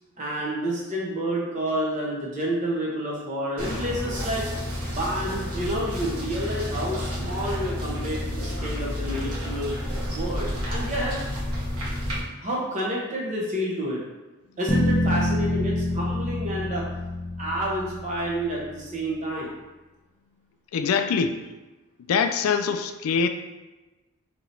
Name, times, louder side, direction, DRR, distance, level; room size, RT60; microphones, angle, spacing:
voice 1, 0.2-4.5 4.9-9.7 10.1-11.1 12.4-14.0 14.6-16.9 17.4-19.5, right 1 dB, 35° right, -4 dB, 0.9 m, -29 dB
sound 1, 3.6-12.2, left 1 dB, 85° right, 1.1 m, -30 dB
sound 2, 14.7-18.8, left 1 dB, 20° left, 0.5 m, -26 dB
voice 2, 20.7-21.4 22.1-23.3, left 6 dB, 80° left, 8 dB, 0.3 m, -23 dB
4.8 x 3.0 x 2.7 m, 1.1 s
head